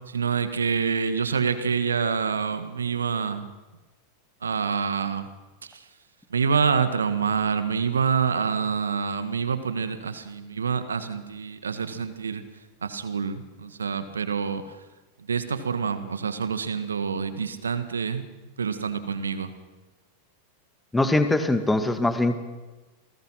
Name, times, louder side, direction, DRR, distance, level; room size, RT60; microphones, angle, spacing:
voice 1, 0.1-3.5 4.4-5.3 5.7-5.8 6.3-12.4 12.8-14.6 15.3-18.3 18.6-19.5, right 6 dB, 70° right, 11 dB, 1.7 m, -27 dB
voice 2, 20.9-22.4, left 2 dB, 10° left, 8 dB, 2.1 m, -22 dB
28.5 x 19.5 x 5.9 m, 1.2 s
figure-of-eight pair, 90°, 0 cm